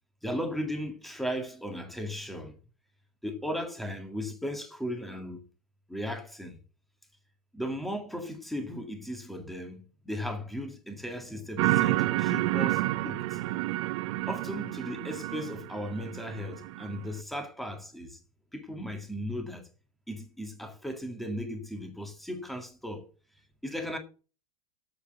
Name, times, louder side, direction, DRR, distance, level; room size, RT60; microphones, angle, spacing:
voice 1, 0.2-2.6 3.2-5.5 5.9-6.6 7.5-13.4 14.3-18.2 18.5-19.6 20.1-23.1 23.6-24.0, equal, ahead, 1.9 m, -36 dB
sound 1, 11.6-17.1, right 17 dB, 50° right, 0.7 m, -29 dB
7.9 x 6.6 x 8.0 m
hypercardioid pair, 135°, 19 cm